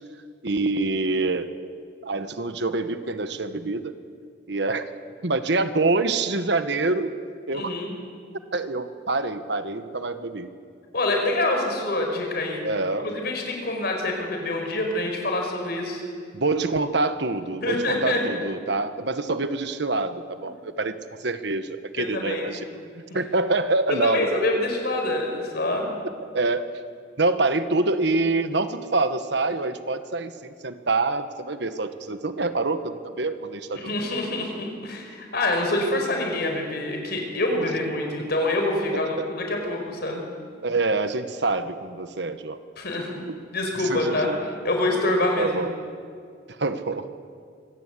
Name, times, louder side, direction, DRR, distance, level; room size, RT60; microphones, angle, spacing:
voice 1, 0.4-1.5 2.0-3.9 4.5-4.8 5.2-7.1 7.5-7.7 8.5-10.5 12.6-13.1 16.3-22.6 23.1-24.4 25.3-25.4 26.3-26.7 27.2-33.9 37.6-37.7 38.9-39.3 40.6-42.6 43.3-43.4 43.8-44.4 45.4-45.7 46.5-47.1, right 3 dB, 65° right, 10 dB, 1.3 m, -26 dB
voice 2, 7.5-7.9 10.9-12.6 13.0-16.0 17.6-18.2 22.0-22.5 23.9-25.9 33.7-40.2 42.8-43.2 43.5-44.3 44.6-45.5, left 2 dB, 60° left, 2 dB, 5.0 m, -26 dB
25.0 x 17.0 x 8.5 m, 2.2 s
head